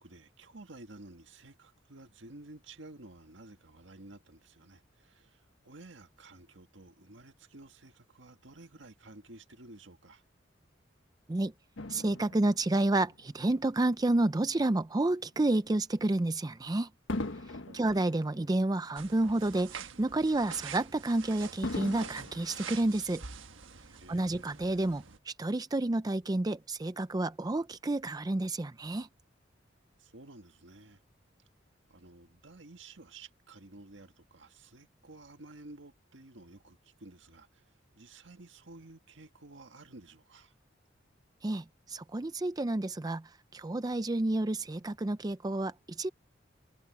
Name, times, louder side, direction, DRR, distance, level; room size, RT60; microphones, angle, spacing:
voice 1, 0.0-10.2 17.6-17.9 24.0-24.5 30.0-31.0 31.9-37.7 37.9-40.6, right 2 dB, 70° right, 1.8 m, -52 dB
Fireworks, 11.8-14.4 15.0-15.2 17.1-19.6 20.0-20.1 21.6-23.5 24.2-24.3, left 2 dB, 80° left, 1.3 m, -41 dB
voice 2, 11.9-16.9 17.4-23.2 24.1-29.1 41.4-46.1, right 2 dB, 20° right, 0.5 m, -30 dB
sound 1, 19.0-25.2, right 6 dB, 85° right, 1.3 m, -46 dB
head